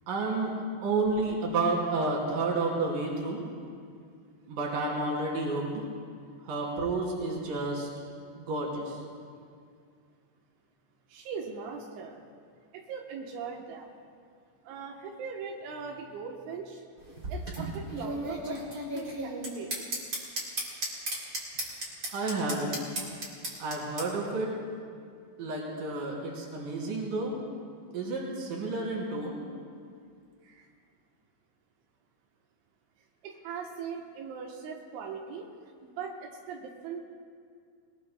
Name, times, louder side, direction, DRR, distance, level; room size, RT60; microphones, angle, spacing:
voice 1, 0.1-0.5 0.8-3.4 4.5-5.8 6.4-7.9 8.4-9.0 22.1-22.7 23.6-24.5 25.4-27.4 27.9-29.4, right 3 dB, 50° right, -3 dB, 4.1 m, -30 dB
voice 2, 11.1-12.2 12.7-13.9 14.7-16.8 17.3-19.9 30.4-30.7 33.2-35.5 35.8-37.0, right 5 dB, 85° right, 0 dB, 3.5 m, -40 dB
sound 1, 17.0-24.1, right 1 dB, 25° right, 2.8 m, -35 dB
22.5 x 20.5 x 2.2 m, 2.2 s
omnidirectional pair, 5.3 m